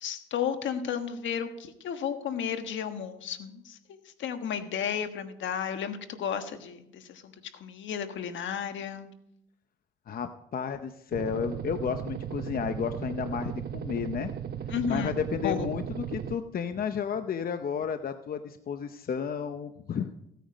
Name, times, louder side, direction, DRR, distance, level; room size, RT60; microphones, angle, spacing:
voice 1, 0.0-7.3 7.6-9.1 14.7-15.1 15.4-15.7, left 8 dB, 70° left, 8 dB, 1.4 m, -33 dB
voice 2, 10.1-14.3 14.9-20.1, left 7 dB, 50° left, 9 dB, 0.8 m, -32 dB
sound 1, 11.1-16.4, right 9 dB, 50° right, 0.8 m, -36 dB
16.0 x 9.2 x 5.2 m, 0.80 s
cardioid pair, 90°, 20 cm